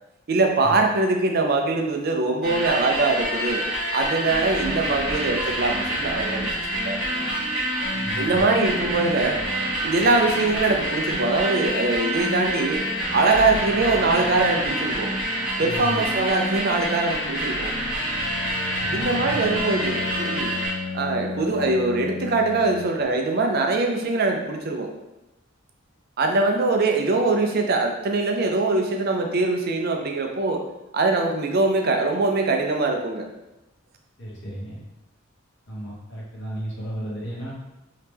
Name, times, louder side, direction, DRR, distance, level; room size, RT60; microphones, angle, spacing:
voice 1, 0.3-3.6 3.9-6.5 6.8-7.3 8.2-9.4 9.8-12.8 13.1-15.1 15.6-17.7 18.9-20.5 20.9-24.9 26.2-30.6 30.9-33.2, right 3 dB, 45° right, 3 dB, 0.4 m, -22 dB
sound 1, 2.4-20.7, right 1 dB, ahead, 1.1 m, -27 dB
voice 2, 7.9-8.5 15.5-16.0 18.8-19.5 34.2-34.8 35.7-37.5, right 1 dB, 50° left, -5 dB, 1.0 m, -34 dB
Bowed string instrument, 18.1-23.2, left 4 dB, 70° left, 0.4 m, -34 dB
3.1 x 2.8 x 3.4 m, 0.96 s
head